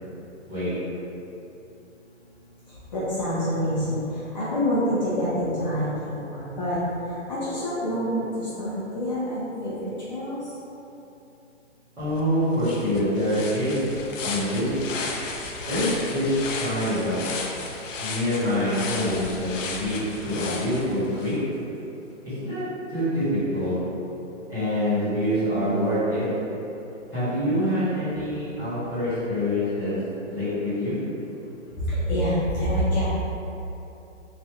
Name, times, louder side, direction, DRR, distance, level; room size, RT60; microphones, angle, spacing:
voice 1, 2.7-10.5 28.8-28.9 31.7-33.1, equal, 35° left, -11 dB, 0.7 m, -27 dB
voice 2, 12.0-13.9 14.2-14.7 15.6-17.3 18.0-21.3 22.4-22.6 22.9-23.8 24.5-26.2 27.1-29.9 30.3-31.0, equal, 10° right, -16 dB, 1.3 m, -25 dB
sound 1, 12.2-12.3 12.6-21.4, left 3 dB, 75° left, 0.6 m, -34 dB
3.3 x 2.6 x 3.6 m, 3.0 s
hypercardioid pair, 160°, 38 cm